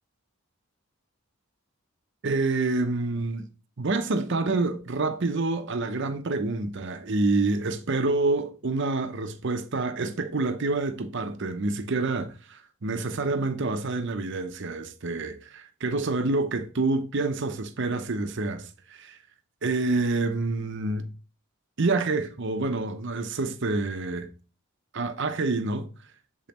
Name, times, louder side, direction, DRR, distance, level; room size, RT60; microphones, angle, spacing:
voice 1, 2.2-3.5 3.8-19.2 19.6-21.1 21.8-24.3 24.9-25.9, right 3 dB, 55° right, 0.7 m, -27 dB
7.2 x 5.2 x 2.9 m
head